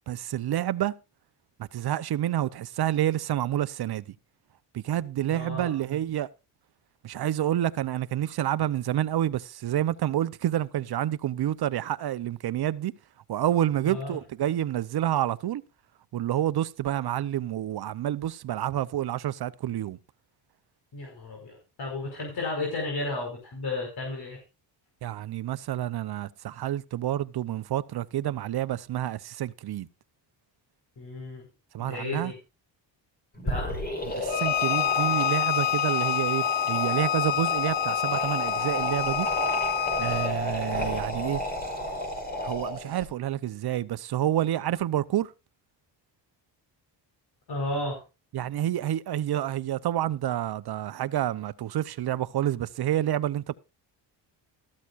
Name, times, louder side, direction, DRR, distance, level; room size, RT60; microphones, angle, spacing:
voice 1, 0.1-0.9 1.7-4.0 4.7-6.3 7.0-12.9 13.3-15.6 16.1-20.0 25.0-29.9 31.7-32.3 34.0-39.3 40.0-41.4 42.4-45.3 48.3-53.6, right 12 dB, 55° right, 0.8 m, -28 dB
voice 2, 5.3-5.7 13.8-14.2 20.9-24.4 31.0-31.5 31.8-32.3 33.4-33.7 47.5-48.0, left 2 dB, 55° left, 5.1 m, -33 dB
sound 1, 33.4-43.0, left 1 dB, 20° left, 5.1 m, -31 dB
Bowed string instrument, 34.3-40.3, left 12 dB, 85° left, 1.0 m, -27 dB
14.0 x 13.0 x 2.5 m
cardioid pair, 110°, 45 cm